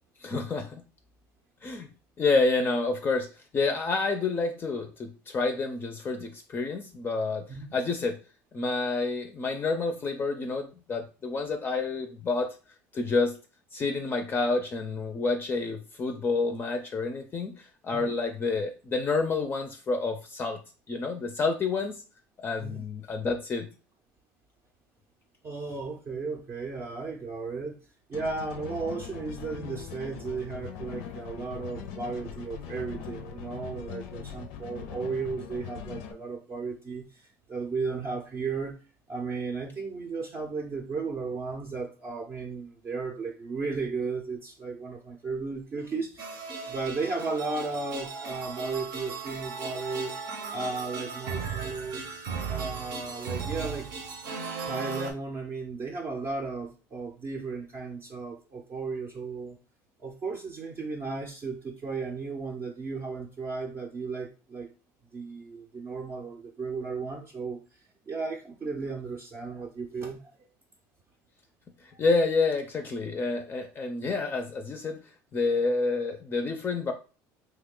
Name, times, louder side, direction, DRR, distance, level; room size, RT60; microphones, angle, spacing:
voice 1, 0.2-0.8 1.6-1.9 2.2-3.3 3.5-8.2 8.5-12.5 12.9-13.4 13.7-20.6 20.9-22.0 22.4-23.7 71.8-75.0 75.3-76.9, left 3 dB, 25° left, 5 dB, 0.4 m, -28 dB
voice 2, 25.4-38.7 39.1-50.1 50.5-52.1 52.5-53.9 54.7-59.6 60.0-64.7 65.1-70.3, right 4 dB, 30° right, 0 dB, 0.5 m, -35 dB
sound 1, 28.1-36.1, left 8 dB, 80° left, 0.5 m, -41 dB
sound 2, 46.2-55.1, right 5 dB, 70° right, 0.8 m, -36 dB
3.1 x 2.1 x 3.7 m, 0.34 s
supercardioid pair, 115°, 8 cm